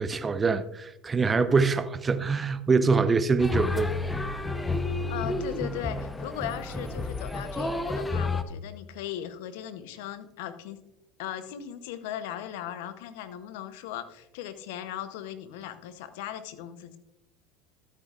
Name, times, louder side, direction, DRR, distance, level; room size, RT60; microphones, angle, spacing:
voice 1, 0.0-4.2, right 4 dB, 25° right, 0.7 m, -24 dB
sound 1, 3.4-8.4, left 2 dB, 15° left, 0.8 m, -31 dB
voice 2, 5.1-10.8 11.2-17.0, left 11 dB, 75° left, 0.8 m, -38 dB
13.5 x 8.4 x 2.4 m
hypercardioid pair, 80°, 0 cm